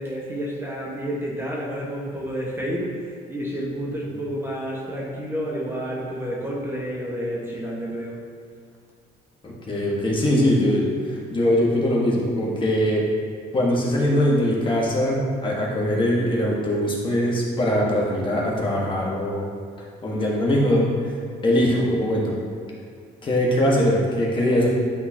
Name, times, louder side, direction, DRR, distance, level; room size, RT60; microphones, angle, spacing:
voice 1, 0.0-8.2, equal, 15° right, -4 dB, 1.3 m, -30 dB
voice 2, 9.4-13.0 13.5-19.5 20.0-22.4 23.2-24.7, equal, 30° left, -4 dB, 1.4 m, -22 dB
10.5 x 3.9 x 2.8 m, 2.2 s
cardioid pair, 110°, 17 cm